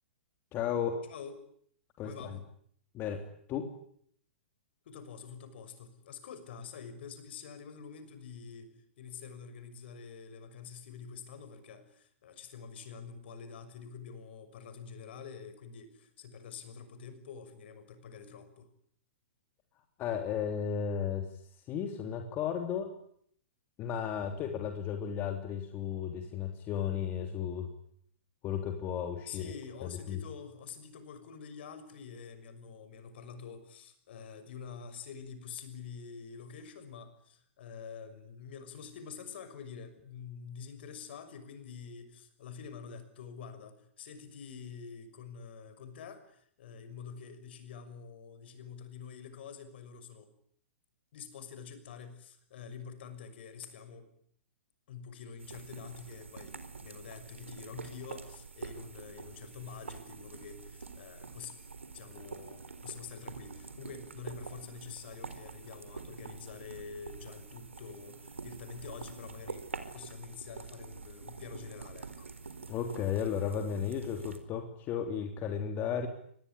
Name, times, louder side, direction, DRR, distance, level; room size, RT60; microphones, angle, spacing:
voice 1, 0.5-1.0 2.0-2.4 2.9-3.7 20.0-21.3 21.7-22.9 23.8-27.7 28.4-29.5 29.8-30.2 72.7-76.1, left 8 dB, 30° left, 5 dB, 3.3 m, -34 dB
voice 2, 2.0-2.4 4.8-18.7 29.3-50.3 51.1-54.1 54.9-61.5 61.9-72.3, left 6 dB, 60° left, 11 dB, 6.2 m, -47 dB
sound 1, 55.4-74.4, right 4 dB, 90° right, 4.2 m, -46 dB
26.0 x 20.5 x 10.0 m, 0.66 s
hypercardioid pair, 120°, 7 cm